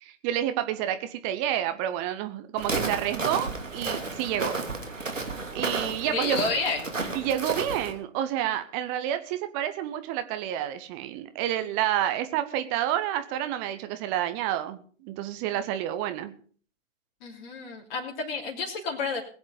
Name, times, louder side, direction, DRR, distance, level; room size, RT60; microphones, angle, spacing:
voice 1, 0.0-4.6 4.9-5.3 5.5-6.4 7.1-16.3, right 11 dB, 15° right, 9 dB, 0.5 m, -29 dB
Walk footsteps, 2.6-7.9, right 3 dB, 80° right, 2.9 m, -32 dB
voice 2, 6.0-7.0 17.2-19.2, left 4 dB, 40° left, -2 dB, 3.3 m, -30 dB
20.5 x 7.9 x 5.1 m, 0.43 s
figure-of-eight pair, 125°, 38 cm